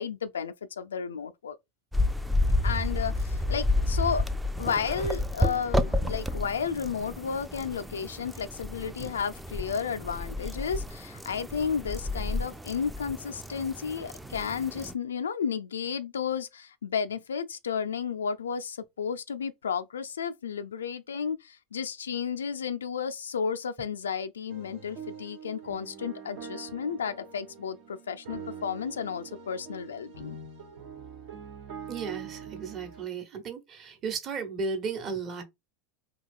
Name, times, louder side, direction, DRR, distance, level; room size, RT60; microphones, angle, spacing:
voice 1, 0.0-1.6 2.6-4.3 4.6-30.4, left 6 dB, 90° left, 0.3 m, -32 dB
sound 1, 1.9-14.9, left 1 dB, 5° right, 0.4 m, -31 dB
sound 2, 24.5-33.1, right 6 dB, 75° right, 1.2 m, -44 dB
voice 2, 31.9-35.4, right 5 dB, 40° right, 1.0 m, -34 dB
2.8 x 2.2 x 3.5 m
hypercardioid pair, 95°, 0 cm